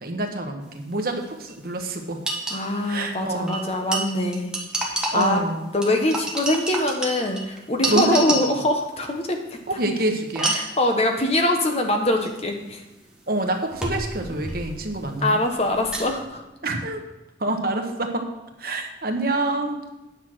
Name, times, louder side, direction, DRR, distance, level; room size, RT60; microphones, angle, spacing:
voice 1, 0.0-2.2 2.8-3.6 5.1-5.7 7.9-8.6 9.7-10.6 13.3-15.4 16.6-17.0 17.4-18.2 18.6-19.8, right 2 dB, 55° right, 4 dB, 1.2 m, -27 dB
sound 1, 1.2-1.3 1.5-1.6 2.3-2.6 3.5-5.5 5.8-8.7 10.3-10.8 12.3-12.4 13.7-15.0 15.3-16.2, right 2 dB, 5° right, 1.5 m, -28 dB
voice 2, 2.5-4.5 4.8-5.4 5.7-9.4 10.4-12.8 15.2-16.4, left 1 dB, 35° left, 3 dB, 1.2 m, -23 dB
9.8 x 6.2 x 6.1 m, 1.0 s
head